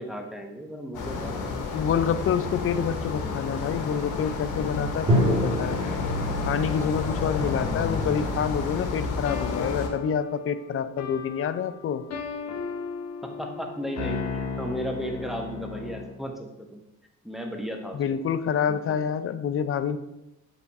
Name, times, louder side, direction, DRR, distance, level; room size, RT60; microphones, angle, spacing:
voice 1, 0.0-1.5 13.2-16.8 17.2-18.2 18.7-19.0, equal, ahead, 2 dB, 1.0 m, -35 dB
sound 1, 0.9-9.9, left 3 dB, 90° left, 1.0 m, -30 dB
voice 2, 1.5-5.8 6.4-12.0 17.9-20.0, left 7 dB, 45° left, 12 dB, 0.5 m, -27 dB
Drum, 5.1-8.9, equal, 20° right, 2.1 m, -28 dB
sound 2, 9.2-16.2, left 4 dB, 65° left, 1.1 m, -35 dB
7.2 x 3.5 x 4.1 m, 0.89 s
cardioid pair, 90°, 30 cm